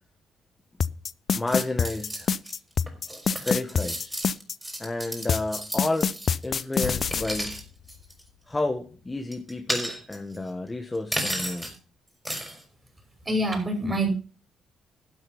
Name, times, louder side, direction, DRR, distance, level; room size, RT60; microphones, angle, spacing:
sound 1, 0.8-4.6 5.3-7.2, left 6 dB, 50° left, 0.6 m, -25 dB
voice 1, 1.3-2.3 3.4-4.2 4.8-6.1 6.4-7.6 8.5-11.7, left 2 dB, 15° left, 4 dB, 1.5 m, -30 dB
sound 2, 1.5-2.5 2.9-7.6 7.9-8.2 9.3-10.4 11.1-11.7 12.2-12.6, equal, ahead, 4.7 m, -33 dB
sound 3, 6.8-9.8, left 7 dB, 80° left, 2.0 m, -40 dB
voice 2, 13.3-14.1, right 1 dB, 20° right, 3 dB, 6.0 m, -25 dB
12.5 x 7.9 x 5.5 m, 0.36 s
cardioid pair, 90°, 0 cm